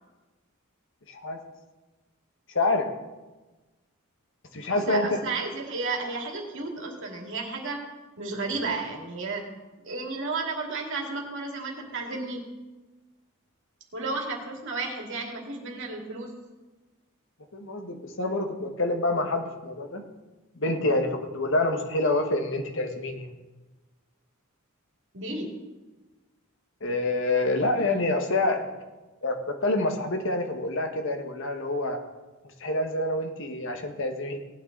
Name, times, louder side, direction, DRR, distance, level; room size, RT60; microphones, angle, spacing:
voice 1, 1.1-1.4 2.5-2.9 4.5-5.2 17.5-20.0 20.5-23.3 26.8-28.7 29.2-32.0 32.6-34.4, left 2 dB, 60° left, 5 dB, 1.6 m, -27 dB
voice 2, 4.7-7.8 8.2-9.5 9.8-12.4 13.9-16.3 25.1-25.5, right 3 dB, 60° right, 0 dB, 2.5 m, -33 dB
18.0 x 9.3 x 4.0 m, 1.2 s
head